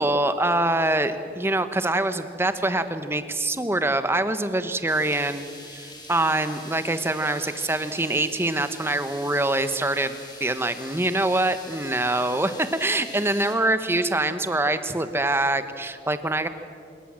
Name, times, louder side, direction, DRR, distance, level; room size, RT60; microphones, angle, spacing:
voice 1, 0.0-10.1 10.4-16.5, right 2 dB, 15° right, 10 dB, 1.2 m, -24 dB
sound 1, 4.9-13.6, left 2 dB, 25° left, 4.0 m, -44 dB
26.0 x 22.0 x 7.7 m, 2.3 s
head